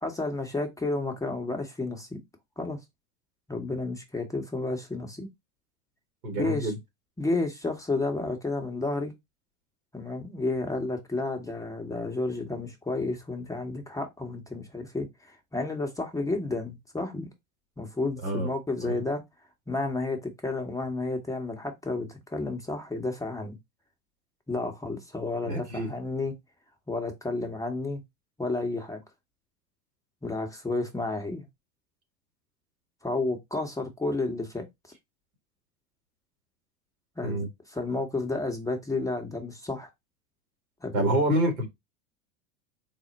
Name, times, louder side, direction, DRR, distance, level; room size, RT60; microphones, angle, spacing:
voice 1, 0.0-2.2 2.6-2.8 3.5-5.3 6.3-6.7 7.2-9.1 9.9-17.3 17.8-19.2 19.7-23.6 24.5-26.4 26.9-28.0 28.4-29.0 30.2-31.5 33.0-34.7 37.2-39.9 40.8-41.1, left 2 dB, 10° left, 0.8 m, -31 dB
voice 2, 6.2-6.8 18.2-18.5 18.8-18.9 25.4-25.9 37.2-37.5 40.9-41.7, right 1 dB, 80° right, 1.7 m, -27 dB
4.2 x 2.0 x 3.9 m
hypercardioid pair, 90°, 42 cm